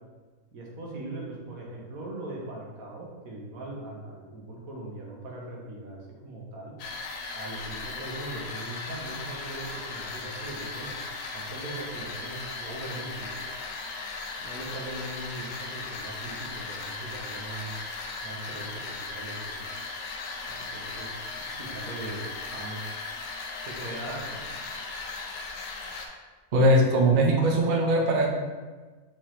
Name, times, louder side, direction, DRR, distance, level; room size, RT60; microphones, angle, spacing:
voice 1, 0.5-6.7 7.3-10.9 11.3-13.4 14.4-17.7 18.2-19.7 20.5-22.9 23.6-24.4, right 2 dB, 65° right, -2 dB, 1.3 m, -40 dB
sound 1, 6.8-26.1, left 3 dB, 80° left, 1.2 m, -37 dB
voice 2, 26.5-28.3, right 1 dB, 85° right, 1 dB, 0.4 m, -21 dB
4.8 x 3.5 x 3.0 m, 1.3 s
omnidirectional pair, 1.7 m